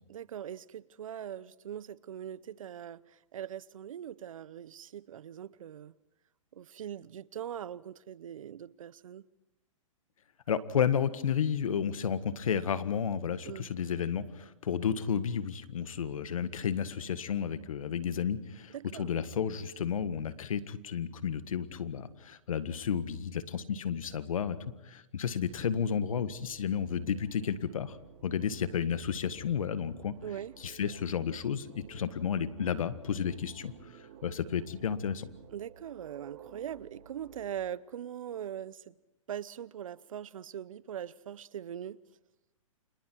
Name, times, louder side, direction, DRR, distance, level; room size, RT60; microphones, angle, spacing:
voice 1, 0.1-5.9 6.5-9.2 13.4-13.7 18.7-19.2 30.2-30.5 35.5-38.9 39.3-42.0, right 10 dB, 75° right, 0.9 m, -41 dB
voice 2, 10.5-24.6 24.8-28.0 28.2-30.2 30.6-33.7 34.2-35.3, left 7 dB, 75° left, 1.7 m, -32 dB
sound 1, 25.4-37.6, right 8 dB, 45° right, 3.4 m, -55 dB
30.0 x 26.5 x 4.7 m
hypercardioid pair, 145°, 17 cm